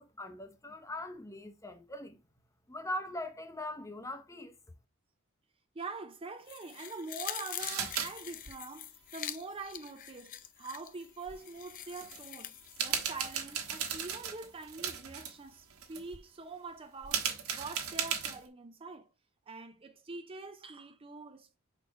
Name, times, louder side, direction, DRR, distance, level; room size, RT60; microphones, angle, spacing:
voice 1, 0.0-2.2 2.7-4.5, left 1 dB, 15° left, 0.8 m, -41 dB
voice 2, 5.7-17.3 17.5-19.1 19.5-21.6, right 3 dB, 25° right, 0.5 m, -44 dB
sound 1, 6.5-13.9 14.3-14.4, left 11 dB, 40° left, 0.5 m, -45 dB
sound 2, 7.6-8.1 8.3-8.5 11.3-11.4 11.9-12.2 12.6-15.3 15.7-16.2 17.0-18.5, right 8 dB, 90° right, 1.4 m, -36 dB
5.9 x 4.4 x 4.6 m
head